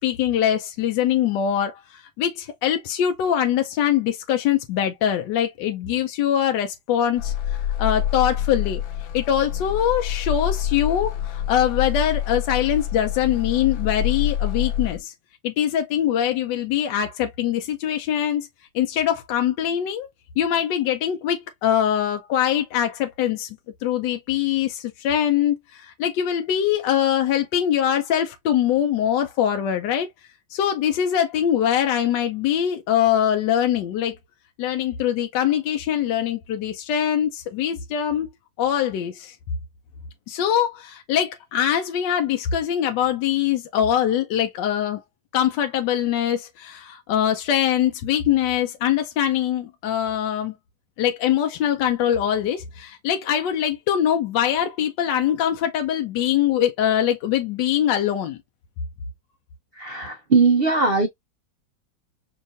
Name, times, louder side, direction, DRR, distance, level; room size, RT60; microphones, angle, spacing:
voice 1, 0.0-8.8 9.1-15.1 15.4-18.5 18.7-20.1 20.4-23.5 23.8-30.1 30.5-34.2 34.6-38.3 38.6-39.4 40.3-45.0 45.3-50.5 51.0-58.4, left 10 dB, 75° left, 1.2 m, -23 dB
sound 1, 7.2-15.0, left 10 dB, 90° left, 1.4 m, -26 dB
voice 2, 59.7-61.1, right 4 dB, 75° right, 0.5 m, -19 dB
5.4 x 2.4 x 2.6 m
omnidirectional pair, 2.0 m